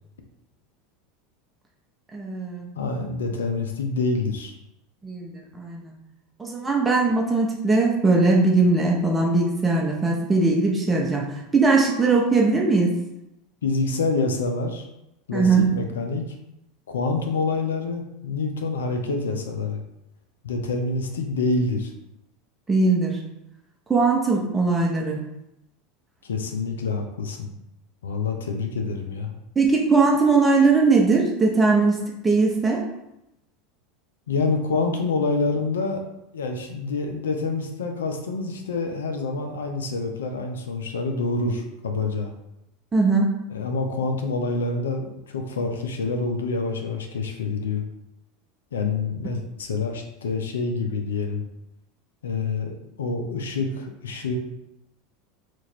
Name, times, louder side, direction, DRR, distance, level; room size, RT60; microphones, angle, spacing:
voice 1, 2.1-2.7 5.0-5.9 6.4-11.2 11.5-12.9 15.3-15.6 22.7-23.2 23.9-25.2 29.6-32.8 42.9-43.3, right 3 dB, 15° right, -1 dB, 0.7 m, -20 dB
voice 2, 2.8-4.6 13.6-14.9 15.3-16.2 16.9-19.8 20.4-21.9 26.2-27.6 28.0-29.3 34.3-36.0 36.3-42.3 43.5-47.8 48.7-51.4 52.2-54.4, left 3 dB, 85° left, 4 dB, 0.5 m, -27 dB
3.0 x 2.5 x 4.3 m, 0.88 s
hypercardioid pair, 90°, 0 cm